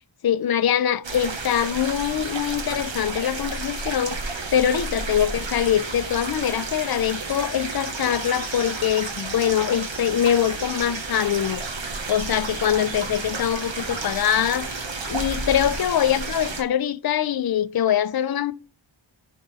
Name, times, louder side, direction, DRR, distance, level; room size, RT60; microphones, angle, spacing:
voice 1, 0.2-18.5, left 10 dB, 50° left, 0.5 m, -23 dB
sound 1, 1.0-16.6, right 3 dB, 65° right, 1.2 m, -32 dB
sound 2, 11.6-15.7, right 1 dB, 40° right, 1.4 m, -40 dB
10.0 x 3.7 x 4.1 m
wide cardioid pair, 65°, 47 cm